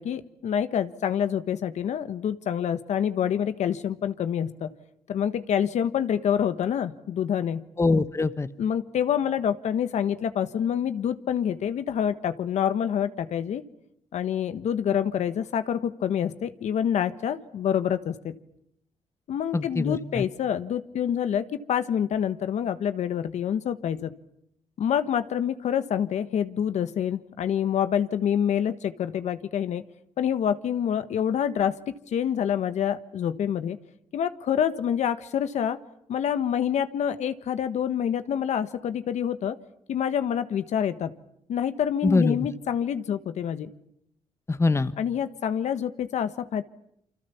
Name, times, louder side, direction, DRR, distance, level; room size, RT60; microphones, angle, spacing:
voice 1, 0.0-4.7 5.1-7.6 8.6-13.6 14.1-18.4 19.3-24.1 24.8-29.8 30.2-33.8 34.1-35.8 36.1-39.6 39.9-41.1 41.5-43.7 45.0-46.6, left 9 dB, 75° left, 11 dB, 1.4 m, -27 dB
voice 2, 7.8-8.5 19.5-20.2 42.0-42.5 44.5-44.9, left 3 dB, 20° left, 13 dB, 1.2 m, -23 dB
28.5 x 25.0 x 7.1 m, 0.74 s
cardioid pair, 85°, 12 cm